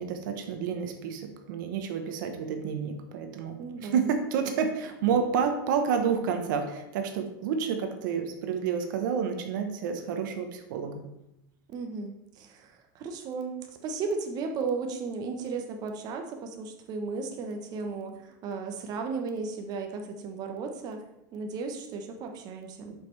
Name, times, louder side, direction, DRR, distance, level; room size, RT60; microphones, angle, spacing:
voice 1, 0.0-11.0 22.9-23.0, right 6 dB, 75° right, 6 dB, 1.0 m, -29 dB
voice 2, 3.6-4.1 11.7-21.0 21.3-22.9, right 4 dB, 40° right, 4 dB, 1.1 m, -35 dB
7.4 x 5.4 x 3.3 m, 0.85 s
supercardioid pair, 150°, 11 cm